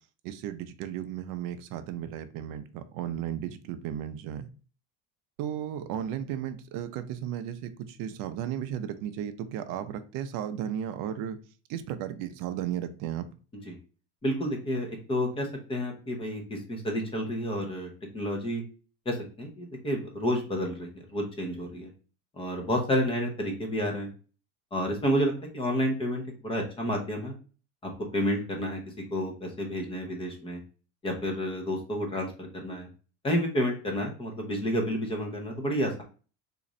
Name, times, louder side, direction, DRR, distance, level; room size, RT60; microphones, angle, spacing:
voice 1, 0.2-4.5 5.4-11.4 11.7-13.3, right 10 dB, 55° right, 0.5 m, -34 dB
voice 2, 14.2-18.6 19.1-21.9 22.3-24.1 24.7-27.3 28.1-28.8 29.1-30.6 31.0-32.9 33.2-36.0, equal, 15° left, 0.7 m, -30 dB
3.8 x 2.5 x 3.0 m
cardioid pair, 145°, 39 cm